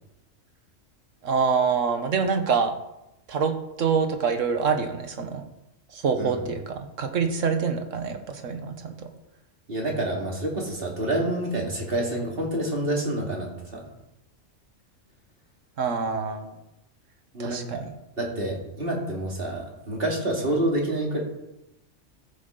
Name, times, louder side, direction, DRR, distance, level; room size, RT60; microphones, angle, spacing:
voice 1, 1.2-2.7 3.3-5.4 5.9-8.9 15.8-16.5 17.4-17.9, right 5 dB, 75° right, 7 dB, 1.5 m, -26 dB
voice 2, 6.2-6.5 9.7-13.8 17.3-17.8 18.2-21.2, right 1 dB, 50° right, -1 dB, 2.6 m, -28 dB
14.5 x 7.8 x 3.9 m, 0.88 s
omnidirectional pair, 1.3 m